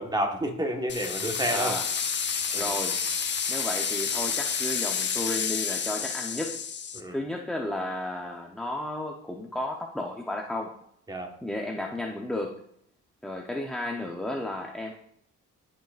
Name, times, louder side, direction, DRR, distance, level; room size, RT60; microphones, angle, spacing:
voice 1, 0.0-1.8 2.5-2.7 6.9-7.2 11.1-11.3, right 1 dB, 15° right, 4 dB, 1.3 m, -30 dB
sound 1, 0.9-7.0, left 6 dB, 35° left, 0.8 m, -29 dB
voice 2, 1.5-1.9 2.5-3.0 3.5-6.6 7.1-10.7 11.4-12.6 13.2-14.9, left 1 dB, ahead, 1 dB, 0.7 m, -33 dB
12.5 x 5.4 x 2.5 m, 0.69 s
cardioid pair, 90°, 30 cm